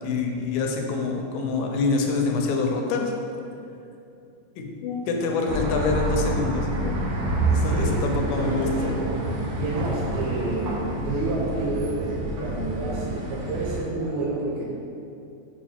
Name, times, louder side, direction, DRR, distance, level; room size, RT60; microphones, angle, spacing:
voice 1, 0.0-3.1 4.6-7.0 7.5-8.7, left 3 dB, 80° left, 2 dB, 2.2 m, -26 dB
sound 1, 5.5-13.8, right 1 dB, 70° right, 1.5 m, -28 dB
voice 2, 7.6-8.0 8.3-9.1 9.5-14.7, right 2 dB, 85° right, -6 dB, 2.8 m, -29 dB
5.4 x 4.7 x 4.5 m, 2.6 s
omnidirectional pair, 4.1 m